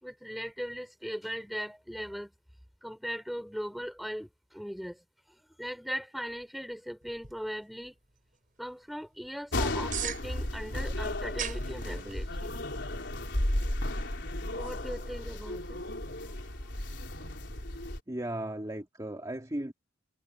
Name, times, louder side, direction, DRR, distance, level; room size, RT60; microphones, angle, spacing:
voice 1, 0.0-2.3 2.8-5.0 5.6-8.0 8.6-12.5 14.5-15.8, equal, ahead, 4.1 m, -39 dB
sound 1, 7.0-17.6, right 9 dB, 45° right, 5.6 m, -46 dB
sound 2, 9.5-18.0, left 1 dB, 65° left, 4.7 m, -34 dB
voice 2, 18.1-19.7, right 1 dB, 20° right, 2.0 m, -36 dB
head